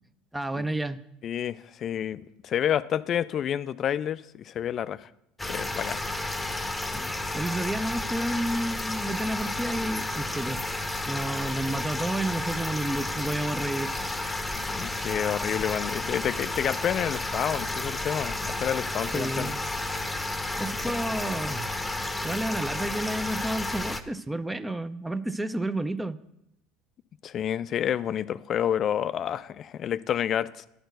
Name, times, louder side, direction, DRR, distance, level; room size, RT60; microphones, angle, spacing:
voice 1, 0.3-1.0 6.9-10.6 11.1-13.9 15.6-15.7 19.1-19.6 20.6-21.9 22.2-26.2, right 1 dB, 10° right, 12 dB, 0.5 m, -31 dB
voice 2, 1.2-5.1 5.5-6.0 14.5-19.5 20.8-20.9 27.2-30.7, left 9 dB, 45° left, 16 dB, 0.4 m, -29 dB
sound 1, 5.4-24.0, left 2 dB, 10° left, 0.9 m, -32 dB
11.0 x 4.5 x 8.0 m, 0.81 s
hypercardioid pair, 70°, 0 cm